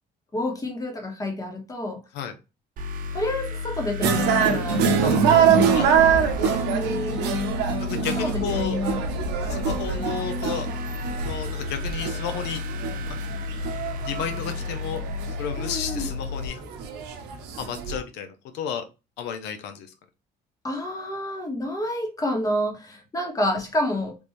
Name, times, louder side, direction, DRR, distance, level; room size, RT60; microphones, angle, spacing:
voice 1, 0.3-2.0 3.1-6.2 6.6-7.5 8.2-9.0 15.6-16.1 20.6-24.2, left 1 dB, 20° left, 1.2 m, -29 dB
sound 1, 2.8-16.5, left 4 dB, 55° right, 0.7 m, -33 dB
sound 2, 4.0-18.0, right 7 dB, 90° right, 0.7 m, -24 dB
voice 2, 6.4-6.7 7.8-8.8 9.4-10.7 11.2-12.6 13.9-15.0 15.4-16.6 17.6-18.8 19.2-19.9, left 8 dB, 85° left, 0.6 m, -32 dB
3.5 x 2.5 x 3.1 m
cardioid pair, 110°, 17 cm